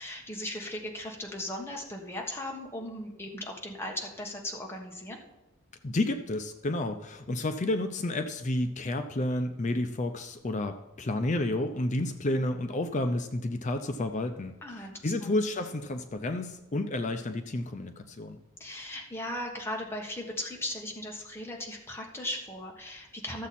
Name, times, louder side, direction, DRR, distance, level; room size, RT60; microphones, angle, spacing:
voice 1, 0.0-5.2 14.6-15.4 18.6-23.5, left 1 dB, 10° left, 0 dB, 1.4 m, -37 dB
voice 2, 5.8-18.4, left 1 dB, 35° left, 8 dB, 0.5 m, -31 dB
13.5 x 7.1 x 4.2 m, 0.96 s
head